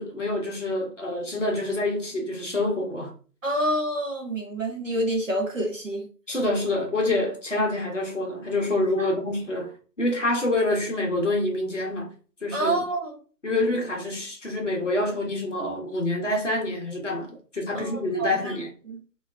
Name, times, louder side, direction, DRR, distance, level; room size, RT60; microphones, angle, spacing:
voice 1, 0.0-3.1 6.3-12.1 12.4-12.8 13.4-18.7, left 2 dB, 45° left, 0.8 m, -27 dB
voice 2, 3.4-6.1 9.0-9.1 12.5-13.2 17.7-18.6 18.9-19.0, right 1 dB, 50° right, 0.8 m, -28 dB
3.5 x 2.3 x 2.2 m
figure-of-eight pair, 175°, 50 cm